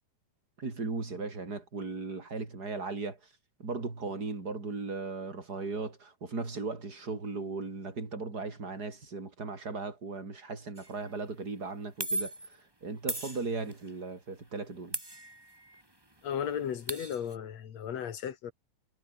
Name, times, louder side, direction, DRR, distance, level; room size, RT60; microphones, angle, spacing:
voice 1, 0.6-3.2 3.6-12.3 12.8-15.0, right 3 dB, 25° right, 4.7 m, -37 dB
sound 1, 10.8-11.0 12.0-12.6 13.1-13.9 14.9-15.8 16.1-16.2 16.5-17.4, right 1 dB, 10° right, 2.4 m, -37 dB
voice 2, 16.2-18.5, left 8 dB, 55° left, 2.9 m, -35 dB
omnidirectional pair, 3.9 m